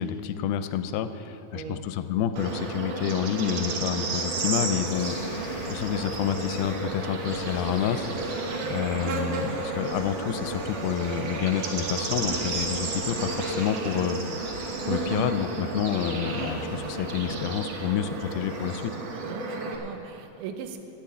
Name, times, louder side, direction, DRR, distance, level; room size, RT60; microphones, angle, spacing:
voice 1, 0.0-5.2 5.7-8.1 8.7-18.9, left 9 dB, 85° left, 11 dB, 2.4 m, -29 dB
voice 2, 1.5-1.9 19.2-20.8, right 7 dB, 80° right, 7 dB, 2.7 m, -39 dB
Bird / Insect, 2.4-19.8, right 3 dB, 65° right, 1.6 m, -32 dB
sound 1, 4.9-18.8, left 3 dB, 60° left, 1.6 m, -44 dB
10.5 x 8.9 x 8.3 m, 2.9 s
omnidirectional pair, 4.5 m